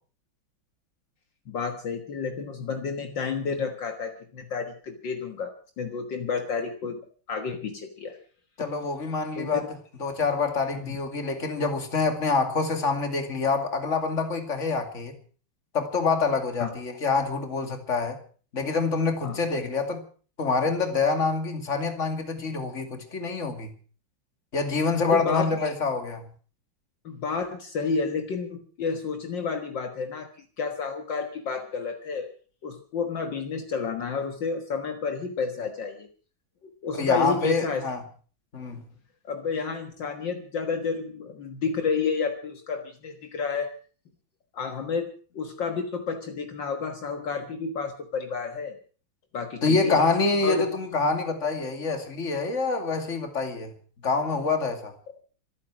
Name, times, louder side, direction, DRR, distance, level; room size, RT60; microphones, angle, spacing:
voice 1, 1.5-7.0 7.3-8.2 9.4-9.6 10.8-10.9 16.6-16.7 19.2-19.4 25.1-25.5 27.0-30.3 30.6-32.3 32.6-36.1 36.6-37.8 39.2-43.7 44.5-48.8 49.3-50.0 50.4-50.7, left 5 dB, 65° left, 6 dB, 2.2 m, -30 dB
voice 2, 8.6-9.7 10.0-15.2 15.7-18.2 18.5-20.0 20.4-23.7 24.5-26.3 37.0-38.0 38.5-38.8 49.6-53.7 54.0-54.9, left 4 dB, 35° left, 6 dB, 2.7 m, -26 dB
26.0 x 9.1 x 6.2 m, 0.42 s
omnidirectional pair, 2.2 m